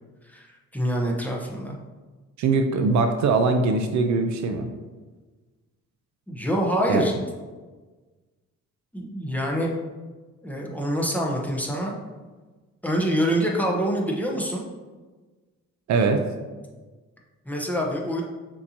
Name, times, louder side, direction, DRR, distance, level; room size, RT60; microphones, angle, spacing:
voice 1, 0.7-1.8 6.3-7.1 8.9-9.7 10.4-12.0 12.8-14.6 17.5-18.2, equal, 5° left, -2 dB, 0.9 m, -25 dB
voice 2, 2.4-4.7 6.9-7.1 15.9-16.2, right 4 dB, 65° right, 6 dB, 0.5 m, -22 dB
6.4 x 2.9 x 2.8 m, 1.3 s
cardioid pair, 90°, 30 cm